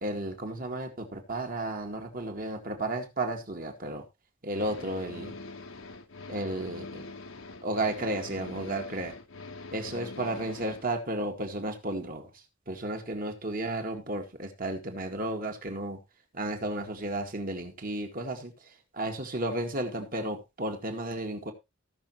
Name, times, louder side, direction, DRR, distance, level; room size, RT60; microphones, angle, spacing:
voice 1, 0.0-4.0 4.4-5.3 6.3-7.1 7.6-9.1 9.7-12.3 12.7-16.0 16.3-18.5 18.9-21.5, right 1 dB, 45° right, 4 dB, 2.0 m, -33 dB
sound 1, 4.5-10.9, left 3 dB, 75° left, 1.2 m, -43 dB
18.0 x 6.2 x 3.1 m, 0.24 s
head